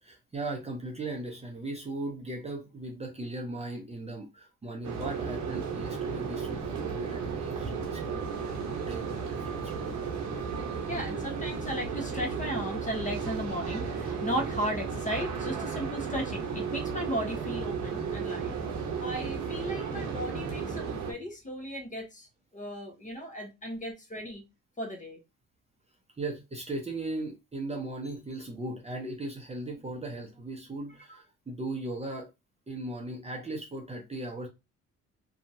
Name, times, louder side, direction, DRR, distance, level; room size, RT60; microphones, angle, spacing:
voice 1, 0.0-10.0 26.2-32.3 32.7-34.5, right 2 dB, 20° right, 0.7 m, -38 dB
sound 1, 4.8-21.1, right 5 dB, 70° right, 0.9 m, -34 dB
voice 2, 10.9-18.6 19.0-22.3 22.5-24.4 24.8-25.2, equal, 25° left, 0.9 m, -35 dB
2.8 x 2.4 x 2.6 m
cardioid pair, 90°, 30 cm